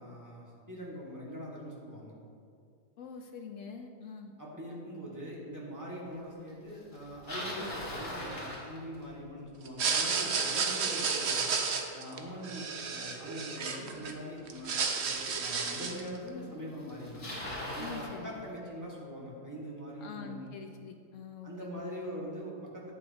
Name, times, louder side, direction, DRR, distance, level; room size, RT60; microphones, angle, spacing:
voice 1, 0.0-2.1 4.4-11.5 11.9-14.8 15.1-17.3 17.7-20.5 21.4-22.9, equal, 10° right, -5 dB, 1.8 m, -42 dB
voice 2, 3.0-4.3 17.8-18.4 20.0-21.9, left 6 dB, 65° left, 4 dB, 0.8 m, -45 dB
Bicycle, 6.9-9.3 14.3-14.4 15.2-15.3 16.4-16.5 16.7-18.1, left 1 dB, 30° left, 2.0 m, -39 dB
sound 1, 9.7-14.1 14.5-16.1, right 5 dB, 55° right, 0.8 m, -32 dB
11.0 x 8.5 x 2.9 m, 2.3 s
omnidirectional pair, 1.7 m